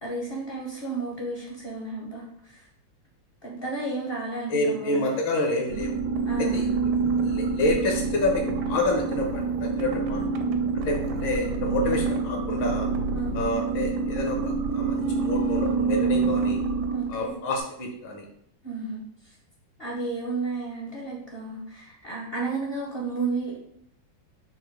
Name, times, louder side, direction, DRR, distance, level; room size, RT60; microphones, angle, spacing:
voice 1, 0.0-2.6 3.4-5.1 6.2-6.7 13.1-13.3 16.9-17.3 18.6-19.0 19.8-23.6, right 3 dB, 45° left, -2 dB, 0.7 m, -32 dB
voice 2, 4.5-6.0 6.4-6.7 7.2-10.2 10.8-12.9 13.3-16.6 17.1-18.3, left 2 dB, 70° left, 1 dB, 1.7 m, -28 dB
sound 1, 5.7-17.4, right 4 dB, 75° right, 0.9 m, -27 dB
5.2 x 2.2 x 4.5 m, 0.70 s
omnidirectional pair, 2.2 m